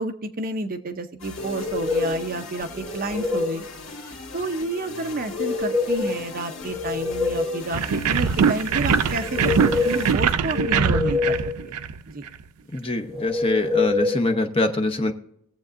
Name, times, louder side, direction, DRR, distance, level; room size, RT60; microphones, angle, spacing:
voice 1, 0.0-3.6 4.3-11.4 11.7-11.8 12.1-12.2, right 2 dB, 40° right, 7 dB, 0.7 m, -30 dB
sound 1, 1.2-10.9, left 2 dB, 60° left, 1.8 m, -39 dB
sound 2, 1.4-2.2 2.7-3.6 5.2-6.2 6.5-7.6 9.0-10.1 10.5-11.5 13.1-14.1, left 4 dB, ahead, 3.9 m, -26 dB
sound 3, 7.7-12.3, right 6 dB, 85° right, 0.5 m, -22 dB
voice 2, 12.7-15.1, left 2 dB, 25° left, 5 dB, 0.8 m, -24 dB
22.0 x 7.5 x 2.5 m, 0.75 s
head